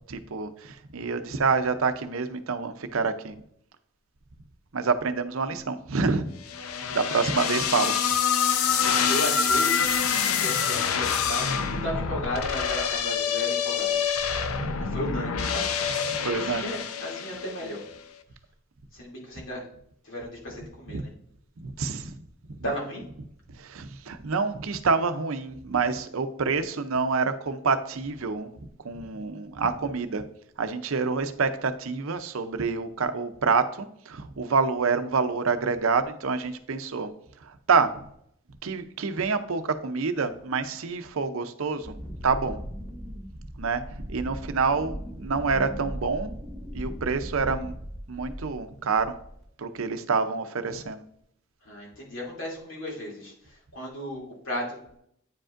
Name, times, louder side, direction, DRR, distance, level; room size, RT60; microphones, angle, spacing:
voice 1, 0.1-3.3 4.7-6.2 6.9-8.0 16.2-16.8 20.9-21.0 21.6-22.2 22.5-22.6 23.5-28.5 28.8-30.2 30.6-37.1 37.4-37.9 38.6-41.9 42.2-42.6 43.6-43.8 44.1-46.3 46.7-47.8 48.1-49.1 49.6-51.0, right 4 dB, 75° right, 9 dB, 0.6 m, -27 dB
sound 1, 6.5-17.8, left 7 dB, 90° left, 0.6 m, -26 dB
voice 2, 8.7-9.8 10.3-11.4 11.7-14.0 14.8-15.8 16.5-17.8 18.9-19.6 20.0-21.1 22.6-23.0 51.6-54.8, equal, 65° left, -3 dB, 2.6 m, -34 dB
Wind, 41.8-48.6 49.0-49.4, equal, ahead, 1.5 m, -38 dB
9.3 x 5.1 x 2.5 m, 0.69 s
head